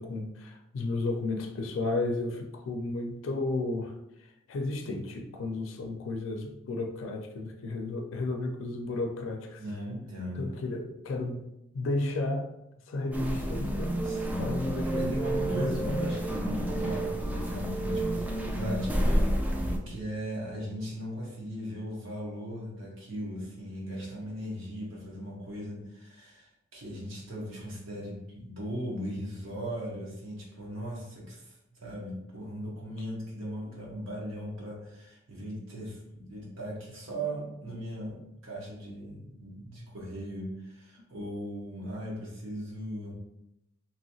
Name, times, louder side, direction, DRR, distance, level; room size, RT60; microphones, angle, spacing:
voice 1, 0.0-3.9 4.5-9.6 10.3-11.5 11.7-12.5 12.9-14.0 14.4-16.0 16.8-16.9, left 2 dB, 90° left, 3 dB, 0.4 m, -33 dB
voice 2, 9.6-10.5 14.0-14.4 14.8-43.1, equal, 90° right, -4 dB, 1.1 m, -38 dB
sound 1, 13.1-19.8, right 1 dB, 10° right, 0.3 m, -29 dB
2.9 x 2.7 x 2.7 m, 0.85 s
head